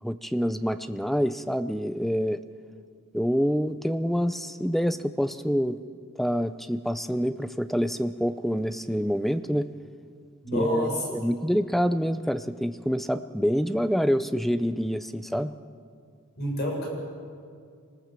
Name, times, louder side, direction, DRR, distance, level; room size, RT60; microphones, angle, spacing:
voice 1, 0.0-2.4 3.1-5.8 6.2-9.7 10.5-15.5, equal, ahead, 11 dB, 0.5 m, -26 dB
voice 2, 10.4-11.0 16.4-16.9, equal, 45° left, -1 dB, 6.8 m, -29 dB
25.0 x 19.5 x 7.5 m, 2.2 s
head